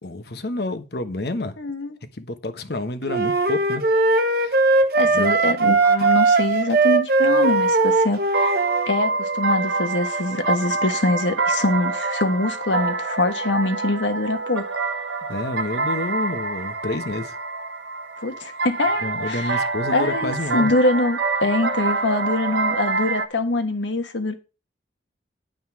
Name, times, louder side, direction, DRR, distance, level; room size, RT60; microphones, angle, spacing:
voice 1, 0.0-1.6 2.1-3.8 4.3-4.6 5.1-5.4 15.3-17.4 19.0-20.7, left 2 dB, 60° left, 1.1 m, -29 dB
voice 2, 1.6-2.0 4.9-8.5 8.9-14.8 18.2-24.3, left 2 dB, 85° left, 1.5 m, -24 dB
sound 1, 3.1-8.9, right 3 dB, 55° right, 0.9 m, -19 dB
sound 2, 7.5-23.3, right 3 dB, 80° right, 1.4 m, -26 dB
9.6 x 5.2 x 6.1 m
head